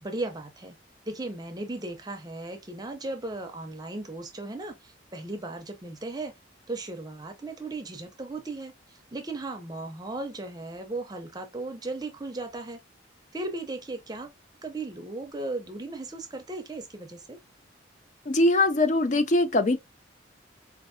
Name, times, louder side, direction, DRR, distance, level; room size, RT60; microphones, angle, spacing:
voice 1, 0.0-0.8 1.1-6.3 6.7-12.8 13.3-14.3 14.6-17.4, right 2 dB, 20° right, 0.6 m, -36 dB
voice 2, 18.3-19.8, left 2 dB, 40° left, 0.5 m, -22 dB
4.4 x 2.5 x 2.6 m
head